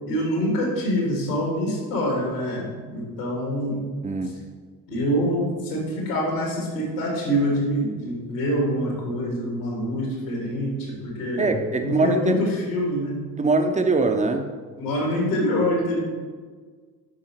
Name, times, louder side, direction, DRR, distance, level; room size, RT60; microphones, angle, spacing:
voice 1, 0.1-3.8 4.9-11.5 11.8-13.1 14.8-16.0, equal, 75° left, -2 dB, 2.2 m, -25 dB
voice 2, 4.0-4.4 11.4-12.4 13.4-14.6, right 3 dB, 15° right, 6 dB, 0.6 m, -22 dB
8.6 x 5.5 x 3.1 m, 1.5 s
figure-of-eight pair, 50°, 48 cm